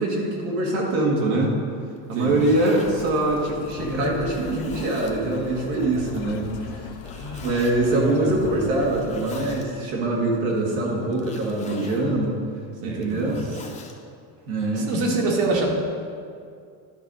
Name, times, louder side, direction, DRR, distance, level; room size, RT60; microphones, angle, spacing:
voice 1, 0.0-1.5 2.1-6.9 7.4-12.4 12.8-13.4 14.5-14.9, right 2 dB, 90° right, -2 dB, 2.1 m, -23 dB
Zipper (clothing), 2.0-2.9 3.6-3.7 4.3-5.2 7.0-7.7 8.8-9.7 11.1-12.1 12.9-14.0, left 4 dB, 15° left, 0.7 m, -41 dB
voice 2, 2.2-2.5 7.0-7.5 7.8-8.6 12.8-13.3 14.8-15.7, right 2 dB, 70° right, -2 dB, 2.0 m, -27 dB
sound 1, 2.8-9.6, left 7 dB, 75° left, 0.7 m, -39 dB
11.0 x 5.0 x 4.1 m, 2.3 s
cardioid pair, 130°, 41 cm